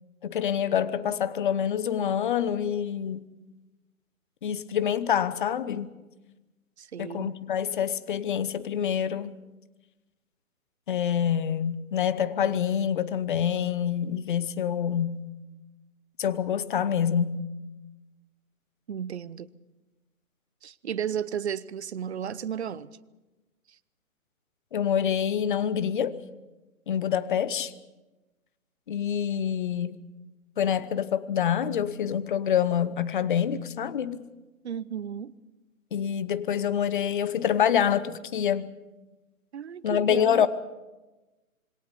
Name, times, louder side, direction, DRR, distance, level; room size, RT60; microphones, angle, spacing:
voice 1, 0.2-3.2 4.4-5.9 7.0-9.3 10.9-15.3 16.2-17.4 24.7-26.2 26.9-27.7 28.9-30.0 30.6-34.2 35.9-38.7 39.8-40.5, left 9 dB, 35° left, 0.9 m, -26 dB
voice 2, 6.8-7.4 18.9-19.5 20.6-23.0 34.6-35.4 39.5-40.5, right 8 dB, 50° right, 0.8 m, -34 dB
26.5 x 21.5 x 5.3 m
figure-of-eight pair, 145°, 43 cm